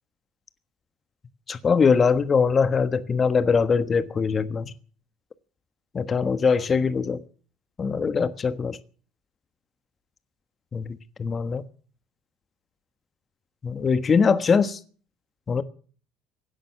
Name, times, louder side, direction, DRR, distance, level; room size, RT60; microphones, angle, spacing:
voice 1, 1.5-4.7 5.9-7.2 7.8-8.8 10.7-11.6 13.6-14.8 15.5-15.6, left 5 dB, 35° left, 1.3 m, -22 dB
17.0 x 10.0 x 7.6 m
hypercardioid pair, 60°, 0 cm